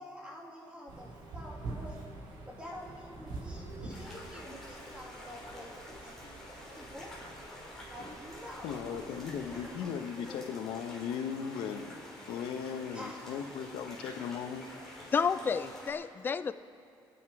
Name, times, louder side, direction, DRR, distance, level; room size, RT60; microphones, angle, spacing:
voice 1, 0.0-2.0 2.5-5.7 6.0-6.2 6.7-7.1 7.9-9.9 12.9-13.5 15.1-15.9, equal, 10° right, -3 dB, 2.3 m, -48 dB
sound 1, 0.9-9.7, right 2 dB, 70° right, 4.7 m, -46 dB
sound 2, 3.9-15.9, left 1 dB, 5° left, 4.1 m, -48 dB
voice 2, 8.6-12.0 12.3-14.6, left 7 dB, 85° left, 7 dB, 1.1 m, -37 dB
voice 3, 15.1-16.5, left 6 dB, 25° left, 13 dB, 0.4 m, -30 dB
28.5 x 10.0 x 4.9 m, 2.6 s
cardioid pair, 150°, 9 cm